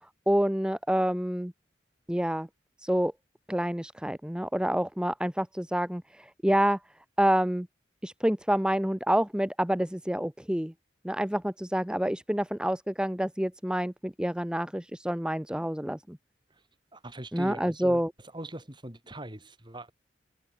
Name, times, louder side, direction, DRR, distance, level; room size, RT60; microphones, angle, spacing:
voice 1, 0.3-1.5 2.1-2.5 2.8-3.1 3.5-6.8 7.2-7.7 8.0-10.7 11.0-16.2 17.3-18.1, equal, 5° right, 1.0 m, -28 dB
voice 2, 16.9-18.0 18.3-19.9, right 1 dB, 25° right, 5.5 m, -41 dB
head